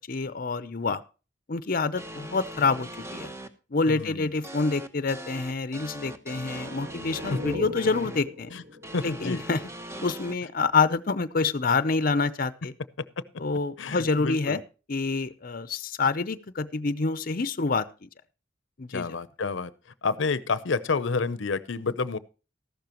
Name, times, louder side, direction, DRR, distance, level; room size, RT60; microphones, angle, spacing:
voice 1, 0.1-1.0 1.5-3.3 3.7-8.5 9.0-9.6 10.0-12.7 13.4-14.6 14.9-18.1 18.8-19.1, left 4 dB, 50° left, 14 dB, 0.7 m, -27 dB
sound 1, 2.0-3.5 4.4-8.2 8.8-10.3, right 1 dB, 15° right, 1.0 m, -40 dB
voice 2, 3.9-4.3 8.5-8.6 8.9-9.4 13.8-14.6 18.9-19.7 20.0-22.2, left 4 dB, 90° left, 16 dB, 0.7 m, -29 dB
sound 2, 6.7-10.3, left 2 dB, 45° right, 1.7 m, -40 dB
14.0 x 12.0 x 3.0 m, 0.33 s
head